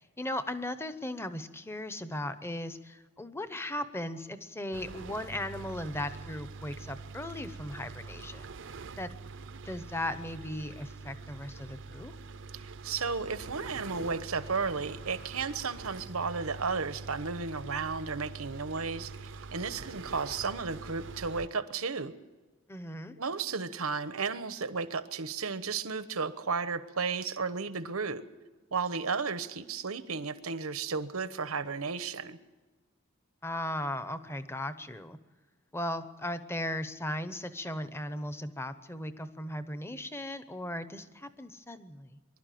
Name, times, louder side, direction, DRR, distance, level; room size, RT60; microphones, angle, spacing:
voice 1, 0.0-8.5 9.0-9.1 9.6-12.1 22.7-23.2 33.4-35.2 35.7-42.2, left 1 dB, 10° left, 11 dB, 0.9 m, -37 dB
sound 1, 4.7-21.5, right 4 dB, 60° right, 0.6 m, -45 dB
voice 2, 12.5-22.1 23.2-28.3 28.7-32.4, right 5 dB, 90° right, 12 dB, 1.1 m, -34 dB
24.5 x 12.0 x 9.3 m, 1.3 s
head